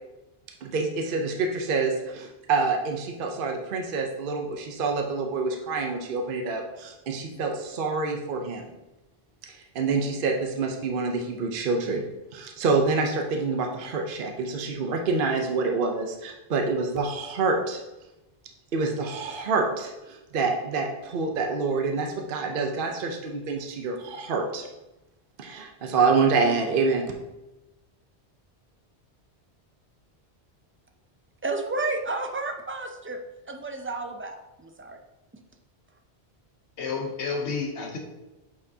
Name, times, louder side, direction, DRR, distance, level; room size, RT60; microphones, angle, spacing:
voice 1, 0.6-8.7 9.5-12.0 12.3-17.8 18.7-24.7 25.4-27.1, right 4 dB, 55° right, 3 dB, 0.9 m, -27 dB
voice 2, 31.4-33.2 33.5-35.0, right 3 dB, 20° right, 4 dB, 0.3 m, -31 dB
voice 3, 36.8-38.0, left 4 dB, 85° left, 1 dB, 1.2 m, -30 dB
8.5 x 4.7 x 2.8 m, 1.0 s
omnidirectional pair, 1.1 m